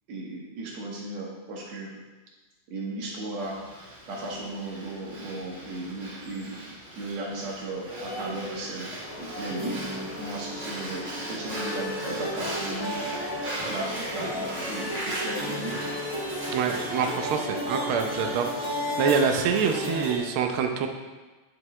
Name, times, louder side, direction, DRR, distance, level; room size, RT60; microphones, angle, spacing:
voice 1, 0.1-1.9 2.7-3.6 4.1-8.9 9.2-9.8 10.2-13.0 13.6-15.9, right 2 dB, 65° right, -2 dB, 2.7 m, -35 dB
Breathing, 3.4-18.4, right 1 dB, 35° right, 3.0 m, -39 dB
sound 1, 7.8-20.2, equal, 15° right, 1.9 m, -34 dB
voice 2, 16.5-18.5 19.0-20.9, right 6 dB, 85° right, 4 dB, 1.1 m, -25 dB
10.0 x 7.6 x 3.2 m, 1.2 s
omnidirectional pair, 3.4 m